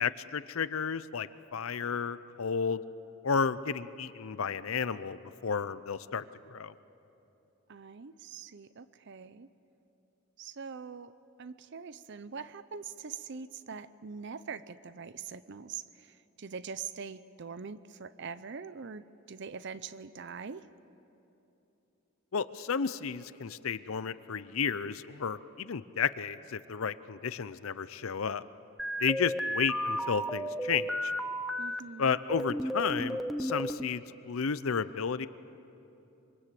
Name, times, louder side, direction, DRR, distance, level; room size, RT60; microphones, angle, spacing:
voice 1, 0.0-2.8 3.2-6.7 22.3-28.4 29.0-31.1 32.0-35.3, left 6 dB, 75° left, 15 dB, 0.6 m, -32 dB
voice 2, 7.7-9.5 10.4-11.1 11.4-20.7 31.6-32.2, right 5 dB, 55° right, 15 dB, 0.6 m, -43 dB
sound 1, 28.8-31.8 32.3-33.9, equal, ahead, 0.6 m, -33 dB
26.0 x 24.0 x 7.6 m, 3.0 s
head